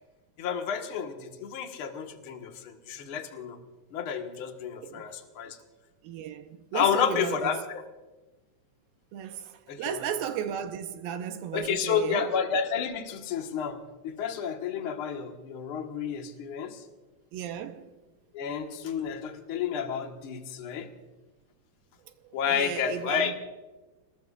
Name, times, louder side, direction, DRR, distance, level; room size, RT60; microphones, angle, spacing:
voice 1, 0.4-3.6 3.9-5.6 6.7-7.8 9.7-10.0 11.5-13.8 14.0-16.8 18.3-20.9 22.3-23.3, left 7 dB, 55° left, 1.5 m, -30 dB
voice 2, 6.0-7.6 9.1-12.3 17.3-17.9 22.5-23.3, right 9 dB, 75° right, 2.6 m, -35 dB
30.0 x 19.5 x 2.5 m
omnidirectional pair, 4.5 m